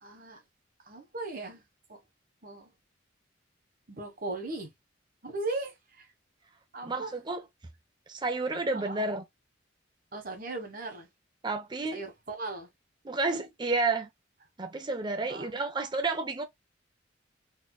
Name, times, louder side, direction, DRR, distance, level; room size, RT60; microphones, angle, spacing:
voice 1, 0.0-0.4 0.8-1.6 1.9-2.0 2.4-2.7 3.9-4.7 5.2-6.1 6.7-7.2 8.7-9.0 10.1-11.1 11.9-12.7 15.3-15.5, right 2 dB, 45° right, 1.3 m, -38 dB
voice 2, 6.8-7.4 8.1-9.2 11.4-12.0 13.1-14.1 14.6-16.4, right 3 dB, 25° right, 0.5 m, -30 dB
4.2 x 2.7 x 2.3 m
head